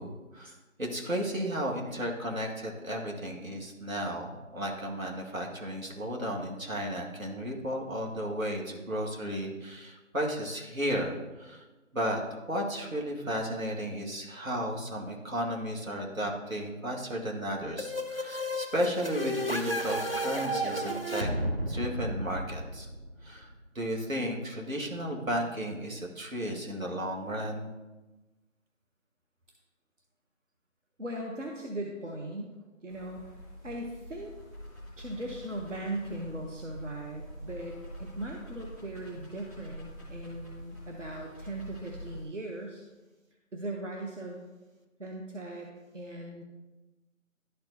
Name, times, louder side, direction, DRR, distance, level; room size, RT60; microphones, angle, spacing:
voice 1, 0.0-11.6 11.9-21.3 21.7-22.9 23.2-27.7, equal, 80° right, -1 dB, 1.9 m, -34 dB
sound 1, 17.8-23.4, equal, 45° right, 0.5 m, -33 dB
voice 2, 31.0-32.6 32.8-33.3 33.6-34.3 35.0-42.8 43.5-44.4 45.0-45.7 45.9-46.4, right 1 dB, 65° right, 0 dB, 1.0 m, -39 dB
sound 2, 32.9-42.3, equal, 25° right, 2.5 m, -46 dB
11.5 x 4.5 x 2.7 m, 1.1 s
figure-of-eight pair, 180°, 40 cm